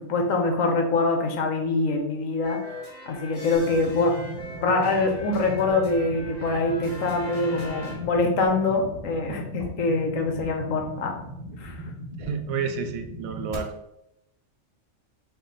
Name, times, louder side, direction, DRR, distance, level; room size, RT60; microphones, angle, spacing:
voice 1, 0.1-2.6 3.1-4.1 4.6-11.1 11.6-11.7, left 3 dB, 70° left, 3 dB, 1.1 m, -24 dB
sound 1, 2.4-7.9, left 1 dB, 40° left, 1.4 m, -40 dB
sound 2, 3.5-13.5, equal, 30° right, 0.9 m, -39 dB
voice 2, 12.2-13.7, right 6 dB, 80° right, 7 dB, 1.0 m, -30 dB
4.5 x 2.8 x 3.9 m, 0.81 s
omnidirectional pair, 1.4 m